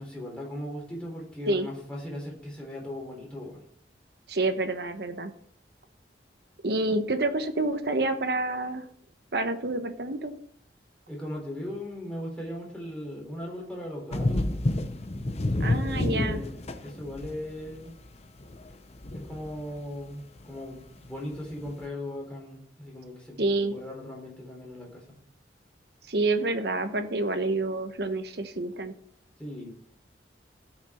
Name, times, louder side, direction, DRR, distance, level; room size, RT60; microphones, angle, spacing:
voice 1, 0.0-3.6 11.1-14.5 15.5-17.9 19.1-25.2 29.4-29.7, left 1 dB, 5° left, -3 dB, 3.6 m, -38 dB
voice 2, 4.3-5.3 6.6-8.9 9.3-10.3 15.6-16.4 23.4-23.7 26.1-28.9, right 2 dB, 65° right, 7 dB, 1.1 m, -28 dB
sound 1, 14.1-17.8 18.4-19.8 20.4-20.5 21.6-21.7, left 1 dB, 35° left, 0.8 m, -29 dB
16.0 x 6.1 x 4.4 m, 0.64 s
head